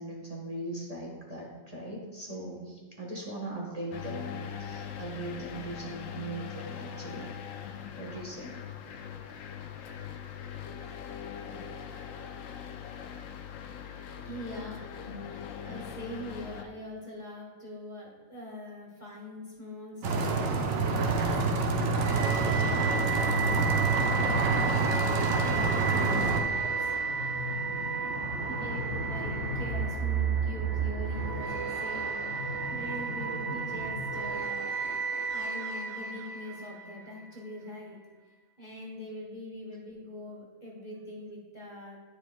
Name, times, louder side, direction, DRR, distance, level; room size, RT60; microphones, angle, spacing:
voice 1, 0.0-7.3 8.0-8.6 10.8-11.0, right 2 dB, 30° right, -3 dB, 1.1 m, -40 dB
sound 1, 3.9-16.6, left 8 dB, 80° left, 1.0 m, -41 dB
voice 2, 14.1-21.2 22.1-26.9 28.5-32.3 32.7-34.7 35.3-38.0 38.6-42.0, left 1 dB, 35° left, -3 dB, 1.3 m, -43 dB
sound 2, 20.0-26.4, right 3 dB, 85° right, 1.1 m, -27 dB
sound 3, 22.0-37.2, right 4 dB, 50° right, 1.5 m, -32 dB
9.8 x 6.8 x 2.2 m, 1.3 s
omnidirectional pair, 1.4 m